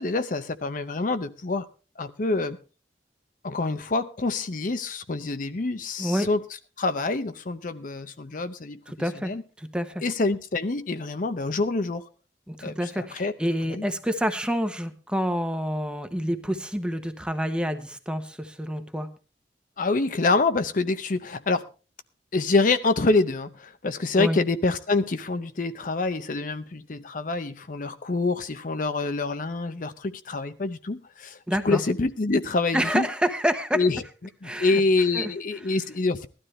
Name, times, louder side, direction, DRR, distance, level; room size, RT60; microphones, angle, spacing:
voice 1, 0.0-1.7 2.0-2.6 3.4-6.4 6.8-8.8 9.2-9.4 10.0-12.0 12.6-13.3 13.7-13.9 19.8-21.6 22.3-31.4 31.6-33.1 33.7-34.0 34.4-36.3, left 3 dB, 50° left, 10 dB, 0.7 m, -26 dB
voice 2, 6.0-6.3 8.9-9.3 9.6-10.0 12.5-19.1 24.2-24.4 31.5-31.8 32.7-33.8 34.4-34.8 35.1-35.3, equal, 5° right, 8 dB, 1.0 m, -28 dB
17.5 x 12.5 x 3.3 m, 0.34 s
head